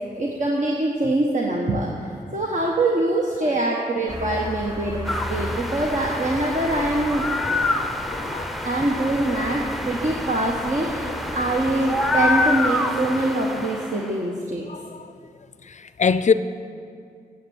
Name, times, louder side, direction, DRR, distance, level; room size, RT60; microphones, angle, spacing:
voice 1, 0.1-7.3 8.6-14.6, right 1 dB, 50° right, -1 dB, 1.2 m, -24 dB
sound 1, 4.1-12.5, equal, 20° right, 2.0 m, -37 dB
sound 2, 5.0-14.2, left 2 dB, ahead, 0.7 m, -27 dB
voice 2, 8.1-8.5 14.7-14.8 16.0-16.3, left 6 dB, 45° left, 13 dB, 0.5 m, -21 dB
9.3 x 7.4 x 7.1 m, 2.4 s
cardioid pair, 45°, 17 cm